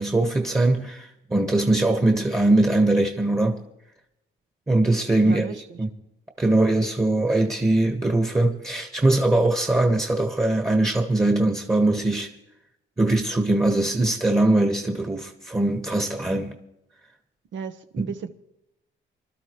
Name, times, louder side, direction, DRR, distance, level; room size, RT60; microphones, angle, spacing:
voice 1, 0.0-3.6 4.7-5.9 6.4-12.3 13.0-16.5, right 2 dB, 15° right, 1.5 m, -21 dB
voice 2, 5.2-5.8 17.5-18.3, right 6 dB, 70° right, 1.2 m, -34 dB
25.0 x 12.5 x 3.1 m
cardioid pair, 90°, 20 cm